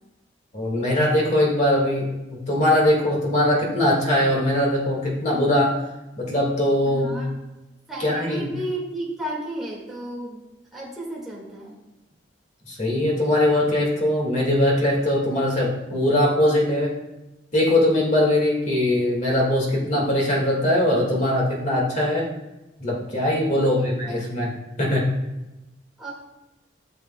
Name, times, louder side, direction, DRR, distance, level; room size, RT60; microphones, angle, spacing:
voice 1, 0.5-5.7 6.2-7.2 8.0-8.5 12.7-16.9 17.5-22.3 22.8-24.5 24.8-25.1, left 1 dB, 35° left, -2 dB, 2.1 m, -21 dB
voice 2, 6.8-7.3 7.9-10.4 10.7-11.8 23.5-24.2 26.0-26.1, right 1 dB, ahead, -6 dB, 2.0 m, -33 dB
13.0 x 6.6 x 2.3 m, 1.0 s
head